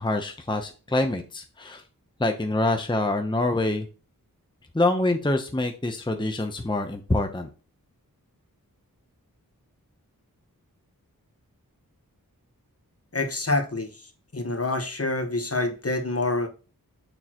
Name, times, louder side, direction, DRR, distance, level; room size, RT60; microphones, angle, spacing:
voice 1, 0.0-1.8 2.2-3.9 4.7-7.5, left 2 dB, 15° left, 0.8 m, -25 dB
voice 2, 13.1-16.5, left 2 dB, 45° left, 1.2 m, -27 dB
6.8 x 6.3 x 3.0 m
wide cardioid pair, 45°, 35 cm